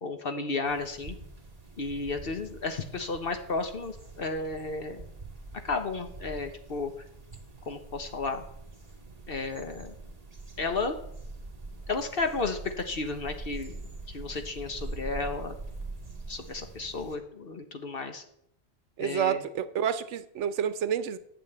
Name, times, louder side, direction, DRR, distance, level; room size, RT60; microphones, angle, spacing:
voice 1, 0.0-1.2 1.8-5.0 5.6-6.9 7.7-8.4 9.3-10.0 10.6-10.9 11.9-13.8 14.1-15.6 16.3-18.2 19.0-19.4, left 3 dB, 55° left, 7 dB, 1.2 m, -33 dB
sound 1, 0.6-17.2, right 2 dB, 35° right, 1.8 m, -44 dB
voice 2, 19.0-21.2, right 8 dB, 85° right, 13 dB, 1.0 m, -29 dB
8.8 x 6.9 x 7.9 m, 0.74 s
omnidirectional pair, 1.2 m